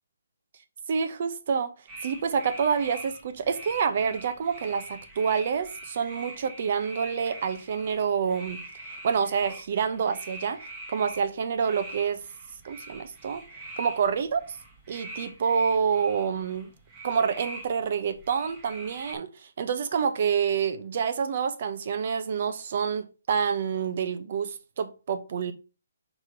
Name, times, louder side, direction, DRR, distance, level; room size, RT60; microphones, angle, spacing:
voice 1, 0.9-1.7 2.0-8.6 9.0-10.6 10.9-12.2 12.6-13.4 13.8-14.4 14.9-16.7 17.0-19.3 19.6-25.5, right 6 dB, 45° right, 0.8 m, -27 dB
sound 1, 1.9-19.1, right 1 dB, 15° right, 1.3 m, -44 dB
5.0 x 4.1 x 5.0 m
hypercardioid pair, 160°, 0 cm